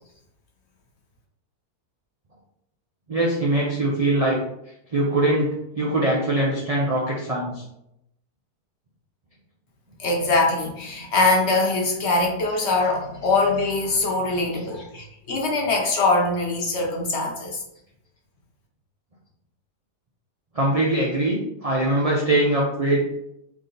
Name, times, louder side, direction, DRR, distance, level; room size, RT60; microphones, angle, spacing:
voice 1, 3.1-4.4 4.9-5.5 5.7-7.6 14.5-14.7 20.5-23.0, right 1 dB, 65° right, -4 dB, 0.3 m, -22 dB
voice 2, 10.0-17.6, left 3 dB, 55° left, 0 dB, 0.9 m, -22 dB
3.6 x 2.7 x 3.8 m, 0.81 s
omnidirectional pair, 1.7 m